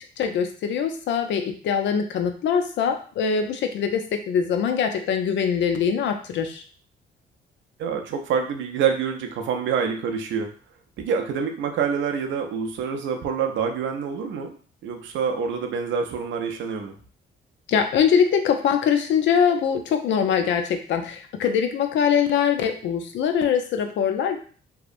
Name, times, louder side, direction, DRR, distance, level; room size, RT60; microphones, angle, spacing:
voice 1, 0.2-6.6 17.7-24.4, left 7 dB, 65° left, 5 dB, 0.4 m, -23 dB
voice 2, 7.8-10.5 11.0-14.5 14.8-17.0, right 6 dB, 70° right, 4 dB, 0.5 m, -26 dB
2.7 x 2.0 x 2.4 m, 0.42 s
cardioid pair, 90°, 20 cm